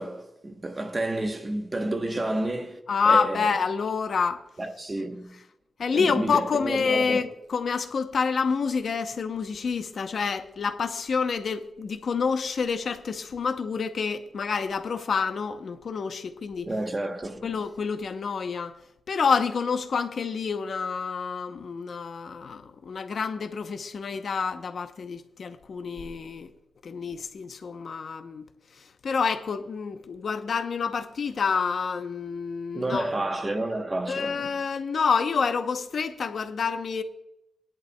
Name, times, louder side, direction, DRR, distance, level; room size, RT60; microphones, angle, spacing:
voice 1, 0.0-2.8 3.0-3.5 4.6-5.3 5.9-7.3 16.6-17.5 32.7-34.4, right 2 dB, 20° right, 0.9 m, -30 dB
voice 2, 2.9-4.4 5.8-16.7 17.4-18.8 19.1-26.5 26.8-28.5 28.8-33.1 34.1-37.0, left 5 dB, 50° left, 0.7 m, -28 dB
17.5 x 11.0 x 2.2 m
wide cardioid pair, 175°, 0 cm